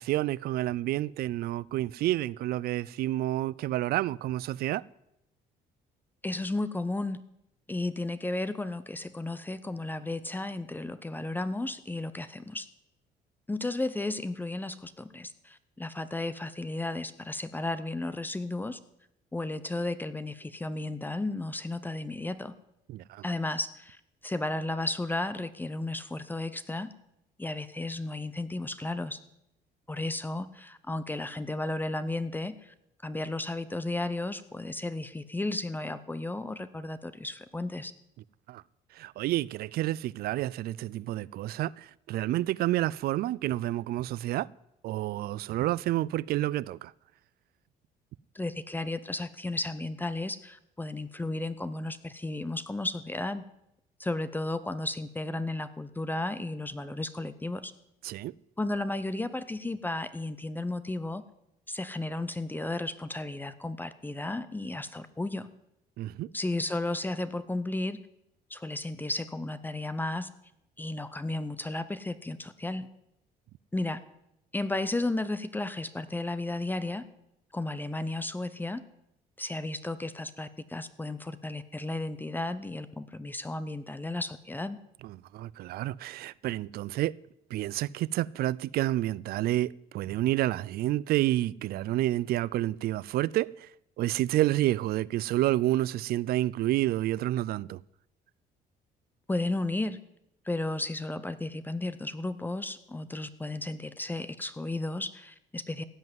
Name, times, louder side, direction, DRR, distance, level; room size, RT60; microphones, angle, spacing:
voice 1, 0.0-4.8 22.9-23.2 38.5-38.6 39.0-44.5 44.8-46.9 58.0-58.3 66.0-66.3 85.0-87.2 87.5-93.7 94.0-97.8, right 15 dB, 65° right, 0.4 m, -29 dB
voice 2, 6.2-7.2 7.7-12.7 13.5-18.8 19.3-22.5 23.2-26.9 27.4-29.2 29.9-32.7 33.0-37.9 48.3-53.4 54.0-57.7 58.6-61.2 61.7-65.5 66.3-68.0 68.5-70.3 70.8-72.9 73.7-74.0 74.5-77.1 77.5-78.8 79.4-84.8 99.3-100.0 100.5-105.8, left 2 dB, 10° left, 0.6 m, -34 dB
16.0 x 5.5 x 9.3 m
cardioid pair, 110°, 17 cm